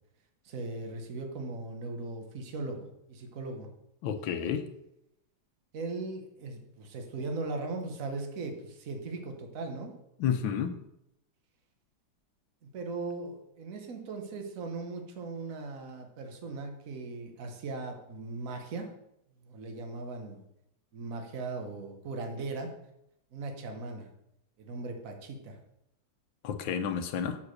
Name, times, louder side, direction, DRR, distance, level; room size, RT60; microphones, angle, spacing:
voice 1, 0.4-3.7 5.7-9.9 12.7-18.9 19.4-20.4 20.9-22.7 23.3-24.1 24.6-25.6, right 3 dB, 50° right, 4 dB, 1.4 m, -38 dB
voice 2, 4.0-4.6 10.2-10.7 26.4-27.4, left 8 dB, 85° left, 8 dB, 1.5 m, -30 dB
7.2 x 4.8 x 6.4 m, 0.83 s
omnidirectional pair, 2.1 m